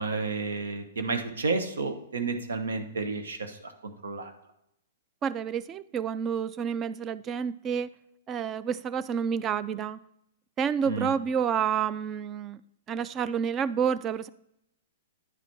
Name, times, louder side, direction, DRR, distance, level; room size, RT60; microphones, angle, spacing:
voice 1, 0.0-4.3 10.9-11.1, right 4 dB, 90° right, 7 dB, 1.0 m, -31 dB
voice 2, 5.2-7.9 8.3-10.0 10.6-12.6 12.9-14.3, right 7 dB, 25° right, 16 dB, 0.3 m, -29 dB
9.8 x 4.2 x 4.6 m, 0.79 s
hypercardioid pair, 135°, 0 cm